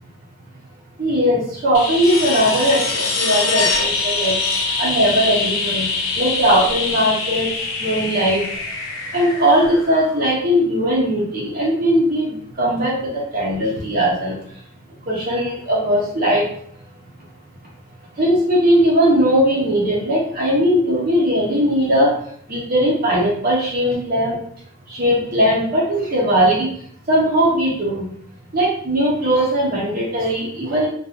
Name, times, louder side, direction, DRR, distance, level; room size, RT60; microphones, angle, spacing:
voice 1, 1.0-4.3 4.8-5.9 6.2-7.5 7.8-8.4 9.1-14.3 15.1-16.4 18.2-22.1 22.5-24.4 24.9-26.7 27.1-28.1 28.5-30.9, equal, 40° right, -4 dB, 0.6 m, -19 dB
sound 1, 1.7-10.4 12.8-12.9, left 3 dB, 70° left, 0.6 m, -24 dB
2.7 x 2.3 x 2.4 m, 0.63 s
head